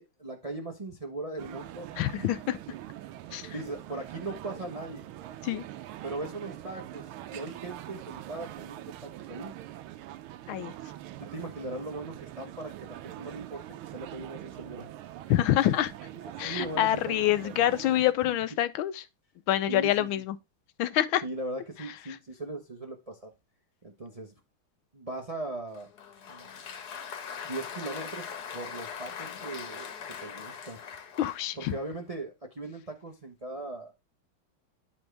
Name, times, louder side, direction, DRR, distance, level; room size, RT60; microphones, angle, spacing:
voice 1, 0.0-1.9 2.2-2.3 3.5-5.0 6.0-9.5 11.2-14.9 16.2-17.5 18.2-18.4 19.7-20.2 21.2-23.3 23.8-24.3 24.9-25.9 26.3-26.5 27.4-28.3 28.5-30.8 31.6-33.9, right 2 dB, 65° right, 0.3 m, -39 dB
sound 1, 1.4-18.1, right 13 dB, 85° right, 1.5 m, -43 dB
voice 2, 2.0-2.6 3.3-3.5 5.4-5.6 10.5-10.7 15.3-15.9 16.4-18.9 19.5-20.3 20.8-21.2 31.2-31.7, left 13 dB, 80° left, 1.3 m, -26 dB
Applause, 25.7-31.9, left 7 dB, 55° left, 1.4 m, -41 dB
10.5 x 4.4 x 3.3 m
omnidirectional pair, 2.3 m